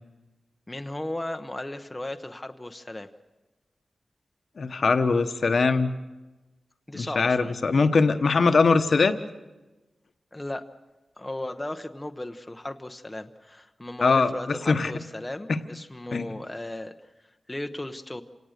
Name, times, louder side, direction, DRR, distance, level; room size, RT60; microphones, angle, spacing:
voice 1, 0.7-3.1 6.9-7.5 10.3-10.7 11.2-16.9 17.5-18.2, left 1 dB, 15° left, 6 dB, 0.9 m, -36 dB
voice 2, 4.6-5.9 6.9-9.1 14.0-14.3 14.7-14.9 15.5-15.6 16.1-16.3, left 4 dB, 60° left, 8 dB, 1.2 m, -21 dB
28.0 x 18.0 x 6.7 m, 1.1 s
wide cardioid pair, 125°, 0 cm